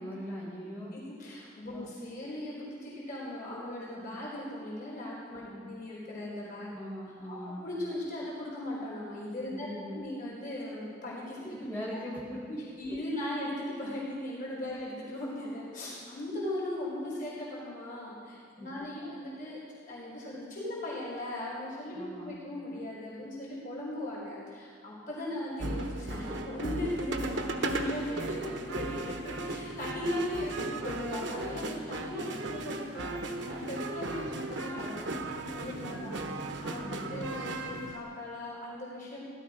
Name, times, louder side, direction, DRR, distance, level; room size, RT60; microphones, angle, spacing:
voice 1, 0.0-0.9 1.7-1.9 5.4-5.7 6.7-7.6 9.5-10.0 11.4-12.6 12.9-13.0 18.6-19.2 21.9-22.3 28.4-29.0 35.8-36.3 36.8-37.3, equal, 10° left, -7 dB, 4.8 m, -41 dB
voice 2, 0.9-6.7 7.3-11.6 11.9-12.0 12.8-35.0 35.6-36.2 36.6-39.2, left 1 dB, 50° left, -6 dB, 4.1 m, -38 dB
sound 1, 25.6-38.0, right 2 dB, 85° right, 1.1 m, -36 dB
16.5 x 12.5 x 5.1 m, 2.2 s
head